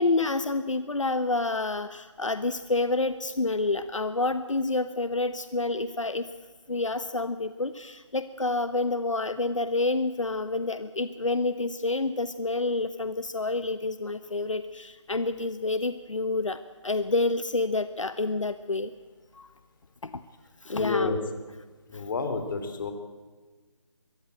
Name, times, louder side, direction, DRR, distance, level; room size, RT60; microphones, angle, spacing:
voice 1, 0.0-6.3 6.7-18.9 19.3-19.5 20.0-20.2 20.6-21.2, left 3 dB, 80° left, 12 dB, 1.2 m, -28 dB
voice 2, 20.7-21.2 21.9-22.9, left 4 dB, 40° left, 8 dB, 3.2 m, -29 dB
23.5 x 16.5 x 8.9 m, 1.3 s
figure-of-eight pair, 155°, 16 cm